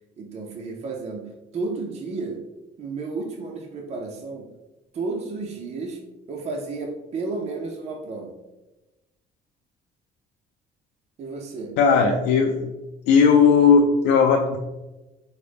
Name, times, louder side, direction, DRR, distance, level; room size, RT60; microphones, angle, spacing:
voice 1, 0.2-2.4 2.8-4.5 4.9-6.0 6.3-8.3 11.2-11.7, right 3 dB, 40° right, 2 dB, 0.5 m, -32 dB
voice 2, 11.8-12.7 13.1-14.6, left 5 dB, 85° left, 1 dB, 0.4 m, -17 dB
4.9 x 2.1 x 3.3 m, 1.0 s
cardioid pair, 110°, 17 cm